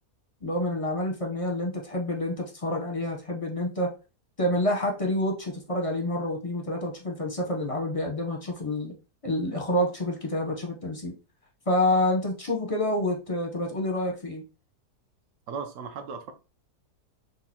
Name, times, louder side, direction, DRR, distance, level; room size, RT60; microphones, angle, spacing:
voice 1, 0.4-3.9 4.4-8.9 9.2-11.1 11.7-14.4, left 1 dB, 30° left, 0.7 m, -28 dB
voice 2, 15.5-16.3, right 5 dB, 60° right, 1.0 m, -36 dB
6.4 x 2.7 x 2.8 m
omnidirectional pair, 1.7 m